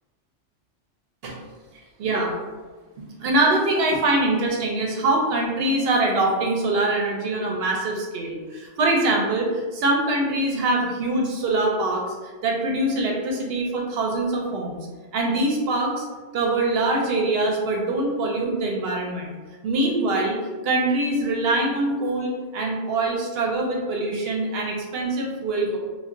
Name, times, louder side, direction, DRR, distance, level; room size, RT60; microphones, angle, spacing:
voice 1, 2.0-2.4 3.0-14.8 15.1-16.0 16.3-19.3 19.6-20.4 20.6-25.8, right 2 dB, 65° right, 0 dB, 0.7 m, -23 dB
2.3 x 2.1 x 3.6 m, 1.3 s
omnidirectional pair, 1.2 m